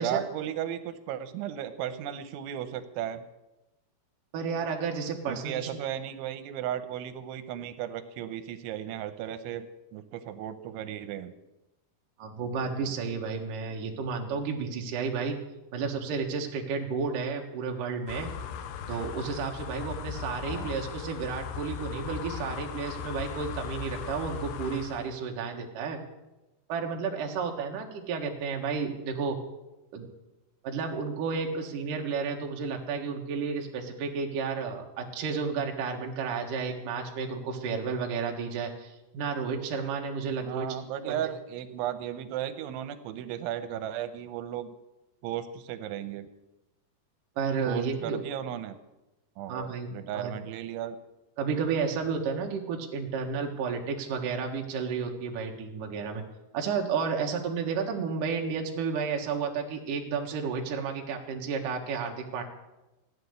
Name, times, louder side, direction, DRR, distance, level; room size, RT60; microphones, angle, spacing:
voice 1, 0.0-3.2 5.3-9.7 9.9-11.3 20.5-20.8 40.4-44.7 45.2-46.3 47.7-48.8 49.4-51.0, right 10 dB, 85° right, 10 dB, 3.3 m, -35 dB
voice 2, 4.3-5.7 12.2-15.4 15.7-18.3 18.9-26.0 26.7-29.4 29.9-30.1 30.6-40.8 41.1-41.2 47.4-48.2 49.5-49.9 50.1-50.3 51.4-56.2 56.5-62.4, right 5 dB, 60° right, 1 dB, 2.7 m, -32 dB
sound 1, 18.1-25.1, left 8 dB, 75° left, 2.8 m, -38 dB
15.0 x 10.0 x 8.1 m, 0.99 s
omnidirectional pair, 5.2 m